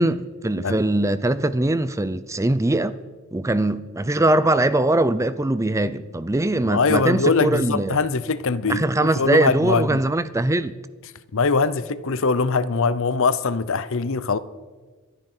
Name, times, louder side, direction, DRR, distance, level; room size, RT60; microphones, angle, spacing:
voice 1, 0.0-2.9 3.3-8.0 8.7-10.7, right 2 dB, 15° right, 0.5 m, -21 dB
voice 2, 6.6-10.0 11.3-14.4, left 4 dB, 60° left, 0.7 m, -22 dB
25.5 x 9.9 x 4.5 m
head